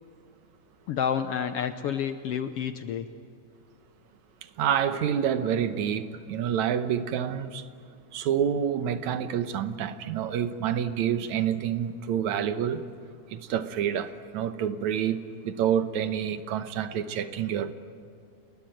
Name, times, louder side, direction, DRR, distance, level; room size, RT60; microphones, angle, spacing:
voice 1, 0.9-3.1, left 8 dB, 70° left, 1.5 m, -29 dB
voice 2, 4.6-7.6 8.1-12.8 13.3-17.7, right 9 dB, 75° right, 2.3 m, -28 dB
29.5 x 21.0 x 9.0 m
omnidirectional pair, 3.4 m